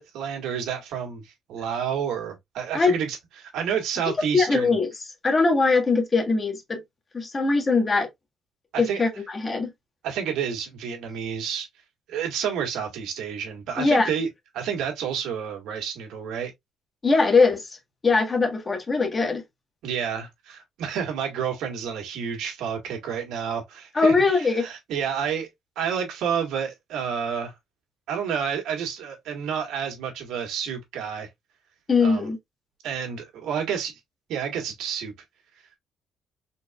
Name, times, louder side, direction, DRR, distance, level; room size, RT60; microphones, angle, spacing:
voice 1, 0.0-4.7 8.7-9.0 10.0-11.7 12.1-14.3 14.5-16.5 19.8-25.5 25.8-27.5 28.1-31.3 32.0-32.3 32.8-34.0 34.3-35.1, right 7 dB, 85° right, 1.7 m, -30 dB
voice 2, 4.3-4.9 5.2-6.8 7.1-8.1 8.8-9.7 13.8-14.1 17.0-17.8 18.0-19.4 23.9-24.6 31.9-32.4, left 4 dB, 30° left, 1.6 m, -21 dB
4.4 x 3.8 x 2.3 m
cardioid pair, 90°, 0 cm